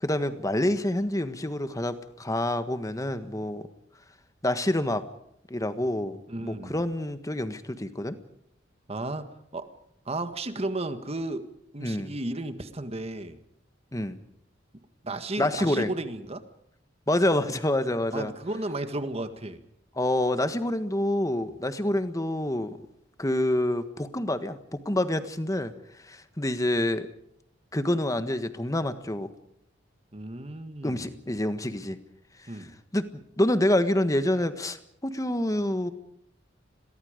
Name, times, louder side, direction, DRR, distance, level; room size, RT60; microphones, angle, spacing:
voice 1, 0.0-3.7 4.4-5.1 5.5-8.2 11.8-12.1 13.9-14.2 15.4-15.9 17.1-18.3 20.0-22.8 23.2-25.7 26.0-27.1 27.7-29.3 30.8-32.0 32.9-35.9, left 1 dB, 20° left, 10 dB, 1.5 m, -27 dB
voice 2, 6.3-6.8 8.9-9.7 10.1-11.5 11.7-13.4 15.0-16.4 18.1-19.6 30.1-31.1 32.5-32.7, right 2 dB, 35° right, 9 dB, 1.7 m, -34 dB
30.0 x 22.5 x 5.2 m, 0.74 s
head